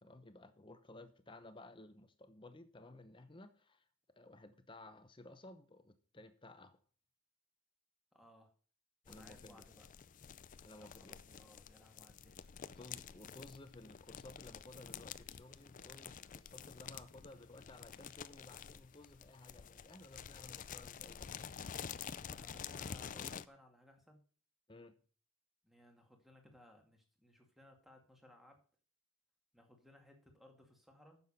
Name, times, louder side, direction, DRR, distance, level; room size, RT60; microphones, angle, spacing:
voice 1, 0.0-3.8 4.1-6.8 9.1-9.6 10.6-11.2 12.7-21.5 24.7-25.0, left 2 dB, 25° left, 10 dB, 0.8 m, -56 dB
voice 2, 8.1-8.5 9.1-9.9 10.8-12.5 22.3-24.2 25.6-28.6 29.5-31.2, left 1 dB, ahead, 2 dB, 2.2 m, -63 dB
sound 1, 9.1-23.4, left 7 dB, 40° left, 0.4 m, -49 dB
9.9 x 7.2 x 5.6 m, 0.43 s
head